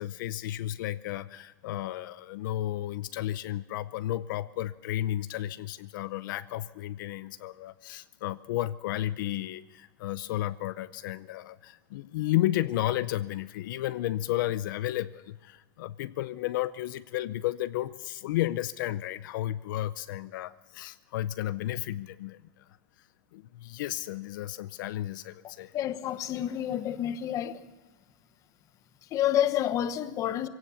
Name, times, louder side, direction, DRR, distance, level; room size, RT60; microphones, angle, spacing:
voice 1, 0.0-22.7 23.0-25.8, left 14 dB, 70° left, 0.6 m, -33 dB
voice 2, 25.7-27.6 29.1-30.5, left 11 dB, 30° left, 1.0 m, -29 dB
23.0 x 17.0 x 7.0 m
supercardioid pair, 160°, 11 cm